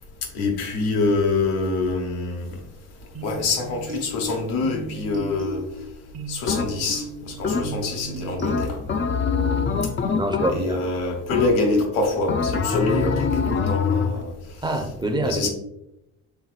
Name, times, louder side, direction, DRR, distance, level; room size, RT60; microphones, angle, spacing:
voice 1, 0.3-2.6 3.2-5.6 6.3-8.8 10.5-14.3 15.2-15.5, left 3 dB, 85° left, 2 dB, 1.1 m, -25 dB
sound 1, 3.1-9.1, right 2 dB, 40° right, 0.9 m, -36 dB
sound 2, 6.5-7.0 7.4-8.0 8.4-10.9 11.3-11.8 12.3-14.2, left 5 dB, 30° left, 0.5 m, -24 dB
voice 2, 9.4-9.7 10.1-11.1 14.6-15.5, right 1 dB, 10° right, 5 dB, 0.7 m, -26 dB
5.7 x 3.7 x 2.4 m, 0.87 s
supercardioid pair, 65°, 41 cm